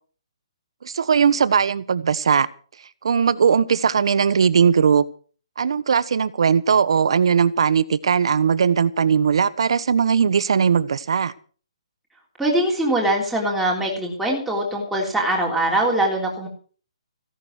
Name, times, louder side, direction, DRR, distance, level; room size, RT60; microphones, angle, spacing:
voice 1, 0.8-2.5 3.0-5.0 5.6-11.3, right 6 dB, 55° right, 16 dB, 1.2 m, -19 dB
voice 2, 12.4-16.5, right 1 dB, ahead, -4 dB, 3.3 m, -22 dB
16.5 x 11.5 x 6.5 m, 0.41 s
hypercardioid pair, 175°, 3 cm